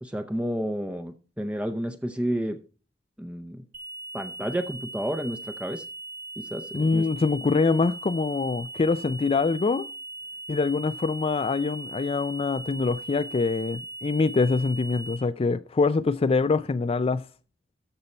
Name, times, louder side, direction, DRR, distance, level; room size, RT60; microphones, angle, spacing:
voice 1, 0.0-2.6 3.2-3.6 4.1-5.8 6.4-7.1, equal, 5° right, 0.6 m, -31 dB
sound 1, 3.7-15.2, right 2 dB, 55° right, 2.8 m, -40 dB
voice 2, 6.7-9.9 10.5-17.2, left 4 dB, 30° left, 0.3 m, -24 dB
14.0 x 5.4 x 4.3 m
head